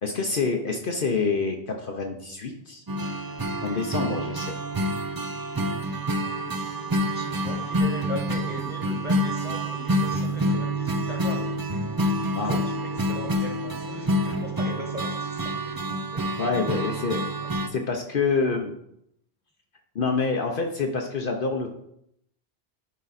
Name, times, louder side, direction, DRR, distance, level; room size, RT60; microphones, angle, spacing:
voice 1, 0.0-2.8 3.6-4.5 12.3-12.6 16.4-17.3 17.6-18.7 19.9-21.7, left 4 dB, 55° left, 2 dB, 0.9 m, -27 dB
sound 1, 2.9-17.7, equal, 35° right, 0.3 m, -27 dB
voice 2, 6.9-11.6 12.7-16.5, left 1 dB, 10° right, 0 dB, 1.4 m, -39 dB
10.5 x 3.7 x 4.1 m, 0.75 s
omnidirectional pair, 1.1 m